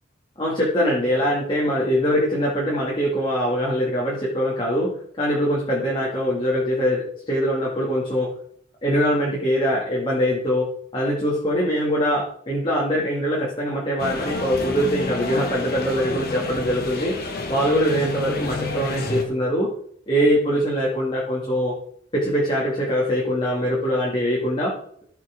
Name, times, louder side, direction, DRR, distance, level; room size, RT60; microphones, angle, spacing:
voice 1, 0.4-4.9 5.2-8.3 8.8-17.2 17.5-19.7 20.1-21.7 22.1-24.8, equal, 25° left, -5 dB, 2.1 m, -23 dB
sound 1, 14.0-19.2, left 2 dB, 55° left, 1.7 m, -30 dB
14.0 x 5.9 x 3.7 m, 0.63 s
head